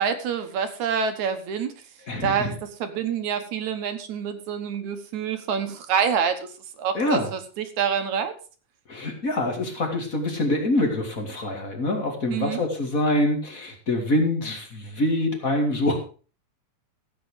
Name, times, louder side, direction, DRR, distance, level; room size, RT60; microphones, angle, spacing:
voice 1, 0.0-1.7 2.2-2.5 2.8-6.4 6.8-8.3 12.3-12.6, right 7 dB, 70° right, 9 dB, 2.6 m, -26 dB
voice 2, 2.1-2.5 6.9-7.3 8.9-16.0, left 1 dB, 30° left, 3 dB, 2.7 m, -25 dB
15.0 x 8.6 x 4.9 m, 0.37 s
omnidirectional pair, 3.6 m